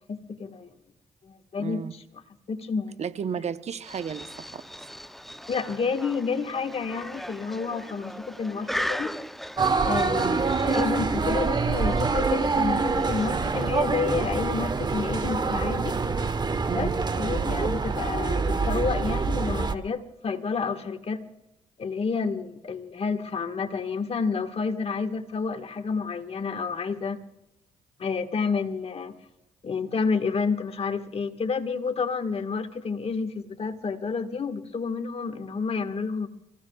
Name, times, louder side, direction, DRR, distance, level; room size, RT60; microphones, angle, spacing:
voice 1, 0.1-0.7 1.3-2.0 2.5-2.9 5.5-9.1 9.8-16.0 16.7-16.9 17.1-21.2 21.8-27.2 28.0-29.1 29.6-36.3, left 5 dB, 50° left, 7 dB, 1.6 m, -30 dB
voice 2, 1.6-1.9 3.0-4.6 10.2-10.5 16.7-17.0, right 7 dB, 55° right, 11 dB, 0.9 m, -33 dB
sound 1, 3.8-14.2, equal, ahead, 0.6 m, -38 dB
sound 2, 9.6-19.7, right 4 dB, 35° right, 1.1 m, -25 dB
30.0 x 16.0 x 2.4 m, 0.88 s
supercardioid pair, 50°, 13 cm